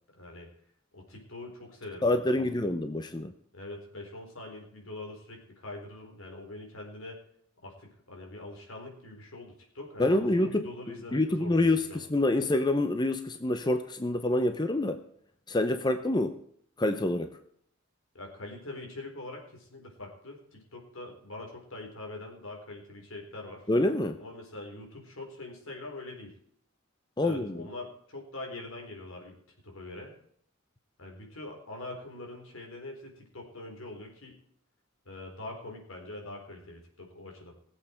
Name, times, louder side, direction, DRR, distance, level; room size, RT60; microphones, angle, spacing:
voice 1, 0.1-0.5 0.9-2.5 3.5-7.2 7.6-12.0 18.1-23.7 24.2-26.3 27.2-29.3 29.6-30.2 31.0-34.4 35.1-37.5, left 2 dB, 80° left, 1 dB, 4.2 m, -43 dB
voice 2, 2.0-3.3 10.0-10.7 11.1-15.0 15.5-16.4 16.8-17.4 23.7-24.2 27.2-27.7, left 1 dB, 20° left, 8 dB, 0.7 m, -27 dB
20.0 x 8.0 x 4.5 m, 0.66 s
head